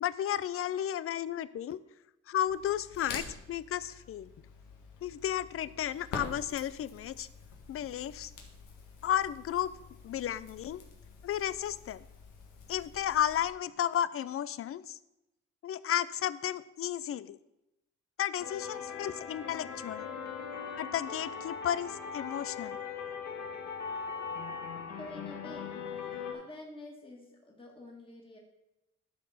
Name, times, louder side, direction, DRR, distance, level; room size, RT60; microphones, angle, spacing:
voice 1, 0.0-1.8 2.3-4.3 5.0-7.3 7.7-8.3 9.0-9.7 10.0-10.8 11.2-12.0 12.7-15.0 15.6-17.4 18.2-20.1 20.8-22.8, left 10 dB, 50° left, 17 dB, 0.5 m, -33 dB
Crackle, 2.5-13.5, left 4 dB, 85° left, 1.7 m, -48 dB
sound 1, 18.4-26.3, left 6 dB, 65° left, 1.6 m, -40 dB
voice 2, 25.0-25.8 26.3-28.4, left 2 dB, 15° left, -1 dB, 2.0 m, -48 dB
11.5 x 4.5 x 5.7 m, 0.91 s
cardioid pair, 90°, 30 cm